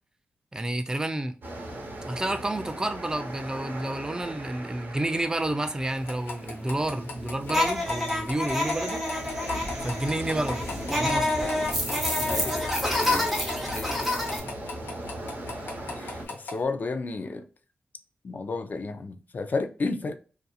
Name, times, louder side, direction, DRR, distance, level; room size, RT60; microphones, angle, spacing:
voice 1, 0.5-1.3 2.1-9.1 9.8-11.4, right 1 dB, 20° right, 0.4 m, -30 dB
sound 1, 1.4-16.3, right 1 dB, 65° right, 0.9 m, -38 dB
sound 2, 6.0-16.6, left 3 dB, 85° left, 0.8 m, -41 dB
sound 3, 7.5-14.4, left 1 dB, 5° right, 0.8 m, -28 dB
voice 2, 16.5-17.4 18.2-20.2, left 3 dB, 50° left, 0.4 m, -31 dB
2.7 x 2.4 x 2.3 m
wide cardioid pair, 90°, 4 cm